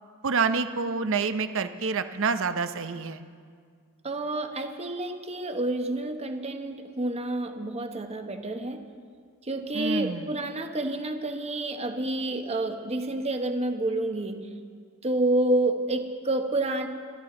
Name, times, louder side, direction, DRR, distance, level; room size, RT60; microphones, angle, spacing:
voice 1, 0.2-3.2 9.7-10.3, right 5 dB, 60° right, 10 dB, 0.8 m, -27 dB
voice 2, 4.0-8.8 9.4-14.4 15.0-16.9, right 2 dB, 30° right, 6 dB, 1.1 m, -29 dB
26.5 x 13.0 x 3.9 m, 2.1 s
head